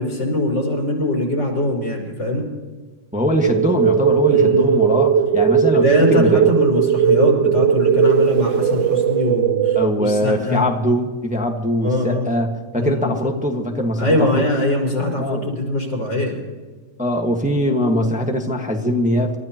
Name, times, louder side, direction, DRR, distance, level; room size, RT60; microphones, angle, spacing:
voice 1, 0.0-2.5 4.2-4.7 5.6-10.6 11.8-12.3 12.8-13.1 14.0-16.4, left 1 dB, 80° left, -1 dB, 5.4 m, -22 dB
voice 2, 3.1-5.8 6.1-6.5 9.7-14.4 15.2-15.5 17.0-19.4, equal, 5° right, 2 dB, 1.2 m, -21 dB
sound 1, 3.4-9.9, right 8 dB, 80° right, 1.3 m, -17 dB
29.0 x 14.0 x 2.9 m, 1.4 s
omnidirectional pair, 2.0 m